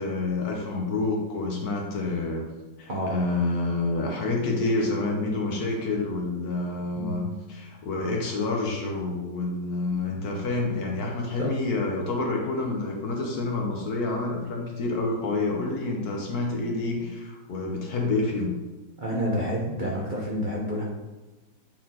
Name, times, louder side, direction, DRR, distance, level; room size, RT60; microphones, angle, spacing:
voice 1, 0.0-2.5 2.8-7.2 7.5-18.5, left 2 dB, 60° left, 0 dB, 1.1 m, -28 dB
voice 2, 7.0-7.3 11.4-11.5 19.0-20.8, equal, 70° right, -3 dB, 0.4 m, -29 dB
8.4 x 3.9 x 2.9 m, 1.1 s
omnidirectional pair, 2.2 m